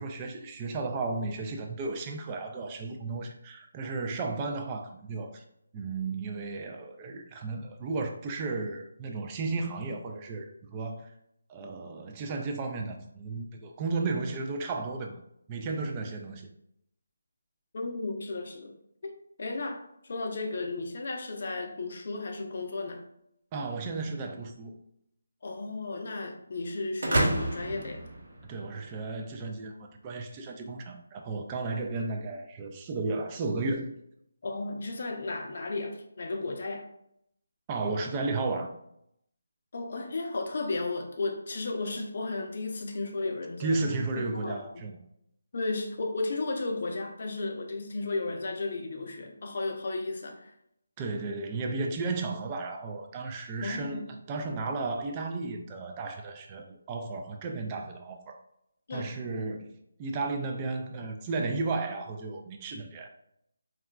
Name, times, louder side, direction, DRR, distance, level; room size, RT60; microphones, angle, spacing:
voice 1, 0.0-5.4 5.7-11.1 11.5-15.2 15.5-16.5 23.5-24.8 28.4-33.9 37.7-38.7 43.6-45.0 51.0-58.4 58.9-59.7 60.0-63.1, right 3 dB, 20° right, 3 dB, 0.3 m, -34 dB
voice 2, 17.7-18.7 19.0-23.0 25.4-28.1 34.4-36.8 39.7-43.8 44.1-44.6 45.5-50.6 53.6-54.1 58.9-59.1, left 3 dB, 50° left, 3 dB, 0.6 m, -34 dB
sound 1, 27.0-29.0, right 1 dB, 60° right, 0.7 m, -29 dB
3.7 x 2.3 x 2.3 m, 0.76 s
figure-of-eight pair, 165°, 0 cm